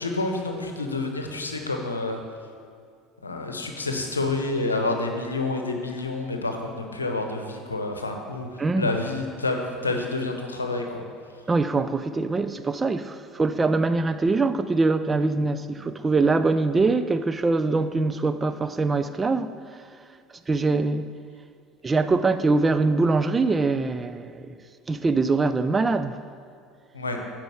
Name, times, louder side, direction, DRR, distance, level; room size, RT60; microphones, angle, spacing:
voice 1, 0.0-2.2 3.2-8.5 8.8-11.0 26.9-27.2, left 2 dB, 90° left, 0.8 m, -28 dB
voice 2, 8.6-8.9 11.5-19.6 20.5-21.1 21.8-24.5 24.9-26.2, right 3 dB, 20° right, 0.4 m, -23 dB
9.1 x 4.7 x 6.3 m
hypercardioid pair, 70°, 0 cm